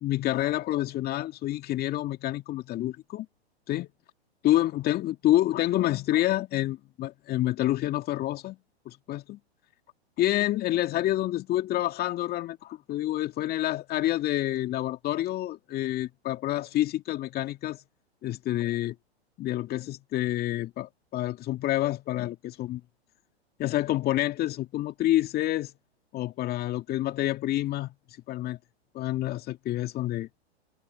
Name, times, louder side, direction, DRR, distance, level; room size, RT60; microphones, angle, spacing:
voice 1, 0.0-3.3 3.7-3.9 4.4-8.6 8.9-9.4 10.2-17.8 18.2-19.0 19.4-22.8 23.6-25.7 26.1-27.9 28.3-28.6 28.9-30.3, left 14 dB, 30° left, 2.2 m, -28 dB
hypercardioid pair, 115°, 33 cm